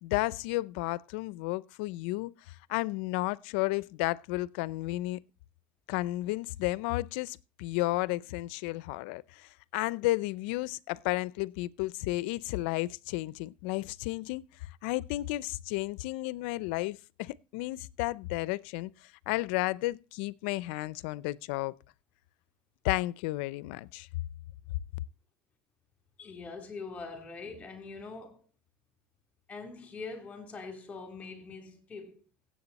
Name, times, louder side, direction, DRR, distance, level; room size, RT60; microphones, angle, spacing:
voice 1, 0.0-2.3 2.7-5.2 5.9-14.4 14.8-18.9 19.3-21.7 22.8-24.1, left 19 dB, 70° left, 0.5 m, -32 dB
voice 2, 26.2-28.4 29.5-32.1, left 4 dB, 20° left, 3.2 m, -43 dB
16.5 x 7.6 x 4.1 m
supercardioid pair, 145°, 6 cm